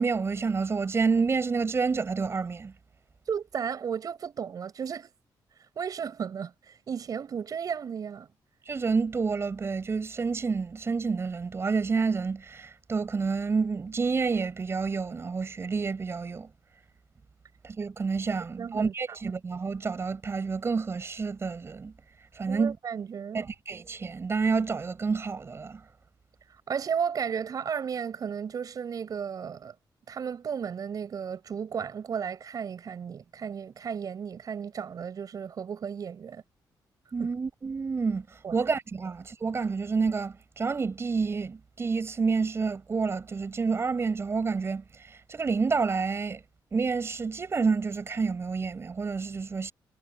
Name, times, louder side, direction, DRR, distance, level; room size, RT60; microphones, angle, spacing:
voice 1, 0.0-2.7 8.7-16.5 17.6-21.9 22.3-22.8 23.3-25.8 37.1-38.2 38.5-46.4 46.7-49.7, right 4 dB, 35° right, 6.7 m, -29 dB
voice 2, 3.3-5.1 5.8-6.5 6.9-8.3 18.6-18.9 22.5-23.5 26.7-29.7 30.1-36.4 37.2-37.3 38.4-38.6, right 7 dB, 50° right, 7.5 m, -34 dB
wide cardioid pair, 135°, 8 cm